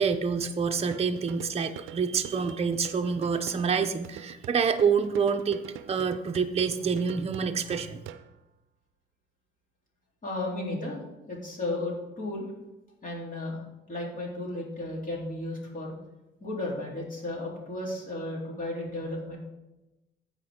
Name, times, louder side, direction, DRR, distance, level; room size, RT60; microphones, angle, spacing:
voice 1, 0.0-5.6 5.9-8.0, right 6 dB, 30° right, 5 dB, 0.7 m, -27 dB
sound 1, 0.9-8.4, right 11 dB, 90° right, 0.5 m, -46 dB
voice 2, 10.2-11.0 11.3-12.5 13.0-13.6 13.9-15.9 16.4-19.4, left 2 dB, 45° left, -3 dB, 3.6 m, -34 dB
15.5 x 5.1 x 3.8 m, 0.98 s
cardioid pair, 90°, 20 cm